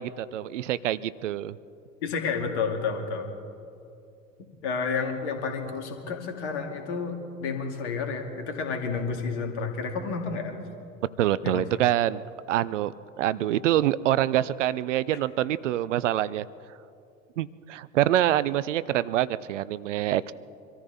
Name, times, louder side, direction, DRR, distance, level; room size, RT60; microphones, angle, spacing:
voice 1, 0.0-1.6 11.2-12.2 12.5-12.9 13.2-16.4 17.4-20.3, right 12 dB, 65° right, 17 dB, 0.6 m, -25 dB
voice 2, 2.0-3.3 4.6-10.5 11.4-11.6, left 5 dB, 60° left, 4 dB, 2.4 m, -30 dB
25.0 x 14.0 x 4.1 m, 2.6 s
figure-of-eight pair, 70°, 39 cm